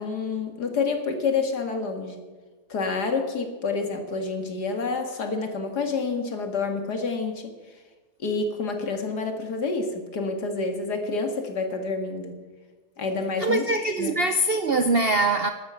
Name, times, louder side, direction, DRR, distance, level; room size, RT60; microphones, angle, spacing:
voice 1, 0.0-2.3 2.7-7.5 8.2-12.4 13.0-13.7 14.0-14.1, left 4 dB, 65° left, 5 dB, 2.5 m, -28 dB
voice 2, 13.4-15.5, right 2 dB, 55° right, 8 dB, 0.6 m, -23 dB
13.5 x 12.0 x 6.9 m, 1.3 s
omnidirectional pair, 1.9 m